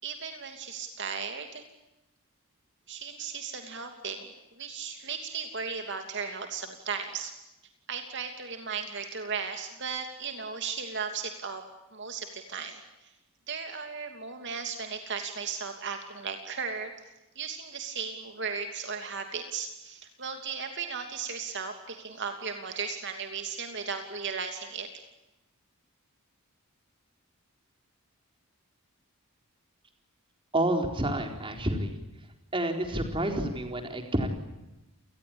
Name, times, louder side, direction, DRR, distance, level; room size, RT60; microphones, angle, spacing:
voice 1, 0.0-1.6 2.9-7.3 7.9-11.6 11.9-13.1 13.5-16.9 17.3-24.9, right 5 dB, 55° right, 5 dB, 2.9 m, -36 dB
voice 2, 30.5-32.0 32.5-34.3, right 1 dB, 25° right, 4 dB, 4.2 m, -29 dB
29.5 x 20.0 x 8.9 m, 0.95 s
head